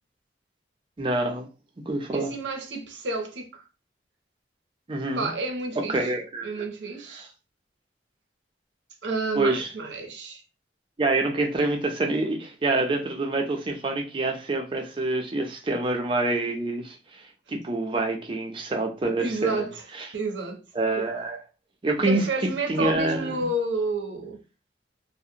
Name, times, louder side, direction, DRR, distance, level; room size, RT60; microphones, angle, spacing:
voice 1, 1.0-1.5 1.9-2.3 4.9-5.3 5.8-6.7 9.4-9.7 11.0-19.7 20.0-20.1 20.8-21.4 21.8-23.5, right 2 dB, 25° right, 0.4 m, -27 dB
voice 2, 2.1-3.6 5.2-6.1 6.4-7.3 9.0-10.4 19.2-19.8 20.1-20.7 22.0-24.4, right 2 dB, 75° right, 0.6 m, -30 dB
2.4 x 2.1 x 2.7 m
head